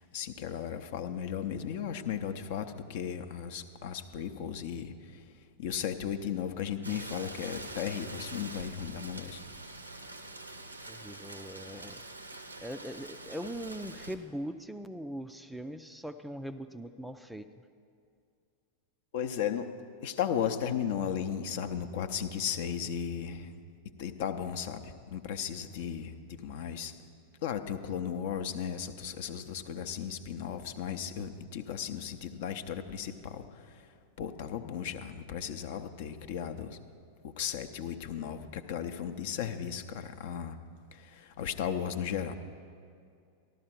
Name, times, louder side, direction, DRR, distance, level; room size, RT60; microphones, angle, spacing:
voice 1, 0.0-5.2 5.6-9.4 19.1-19.7 20.0-23.5 24.0-26.9 27.4-33.9 34.2-36.8 37.2-40.6 40.9-42.3, left 8 dB, 50° left, 9 dB, 0.6 m, -35 dB
Rain, 6.8-14.1, right 2 dB, 85° right, 0.7 m, -45 dB
voice 2, 10.9-12.0 12.6-17.5, equal, 5° right, 9 dB, 0.4 m, -41 dB
14.0 x 12.0 x 4.5 m, 2.3 s
figure-of-eight pair, 90°, 0 cm